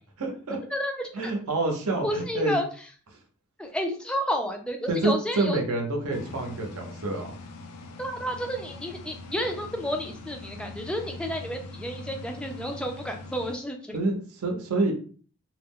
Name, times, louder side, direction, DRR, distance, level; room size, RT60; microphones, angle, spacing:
voice 1, 0.2-0.6 1.1-2.6 4.9-7.3 13.9-14.9, right 2 dB, 75° right, 3 dB, 0.7 m, -27 dB
voice 2, 0.7-1.3 2.0-2.7 3.6-5.6 8.0-14.0, equal, 5° left, 3 dB, 0.3 m, -31 dB
sound 1, 6.1-13.6, left 2 dB, 90° left, 0.4 m, -42 dB
2.3 x 2.0 x 3.5 m, 0.42 s
head